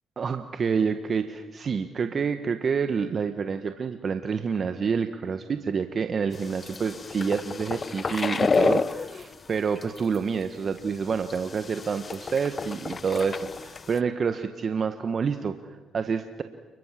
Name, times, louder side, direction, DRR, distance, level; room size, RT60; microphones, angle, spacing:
voice 1, 0.2-16.4, right 6 dB, 45° right, 8 dB, 1.4 m, -28 dB
sound 1, 6.3-9.3 9.8-10.2 10.8-10.9 11.2-14.0, left 4 dB, 40° left, 0.9 m, -30 dB
29.5 x 22.0 x 7.7 m, 1.3 s
supercardioid pair, 60°, 0 cm